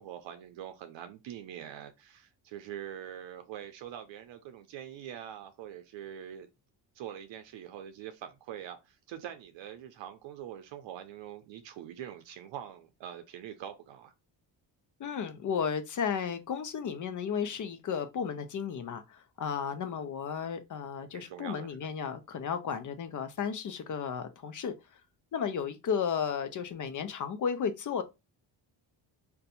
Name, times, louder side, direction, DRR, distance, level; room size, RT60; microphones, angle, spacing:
voice 1, 0.0-6.5 6.9-14.1 21.1-21.7, right 10 dB, 70° right, 0.6 m, -44 dB
voice 2, 15.0-24.7 25.3-28.0, left 7 dB, 40° left, 0.5 m, -34 dB
2.6 x 2.2 x 4.1 m
cardioid pair, 105°, 46 cm